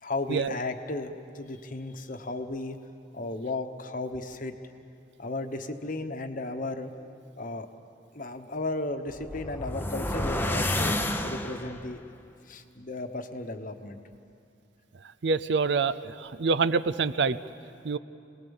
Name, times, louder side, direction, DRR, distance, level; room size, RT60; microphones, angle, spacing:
voice 1, 0.0-2.8 3.1-4.5 5.2-6.9 7.4-7.7 8.1-10.9 11.2-12.0 12.5-14.0, left 2 dB, 45° left, 7 dB, 1.1 m, -34 dB
sound 1, 9.1-11.9, left 1 dB, 10° left, 0.8 m, -30 dB
voice 2, 15.2-17.4 17.8-18.0, right 4 dB, 65° right, 15 dB, 0.5 m, -26 dB
26.5 x 19.5 x 7.2 m, 2.5 s
head